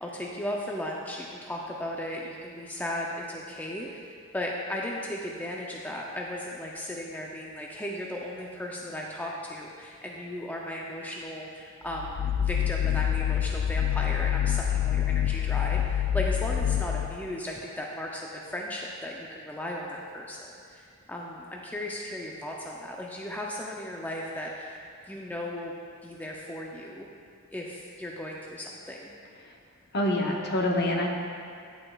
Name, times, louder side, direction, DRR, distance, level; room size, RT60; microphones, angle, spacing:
voice 1, 0.0-20.4 20.7-24.8 25.1-25.7 26.0-27.1 27.5-29.1, left 1 dB, 10° left, -2 dB, 0.4 m, -36 dB
sound 1, 11.9-17.4, left 10 dB, 85° left, 0.3 m, -27 dB
voice 2, 29.9-31.1, left 1 dB, 50° left, 0 dB, 0.9 m, -26 dB
9.9 x 8.7 x 2.3 m, 2.4 s
head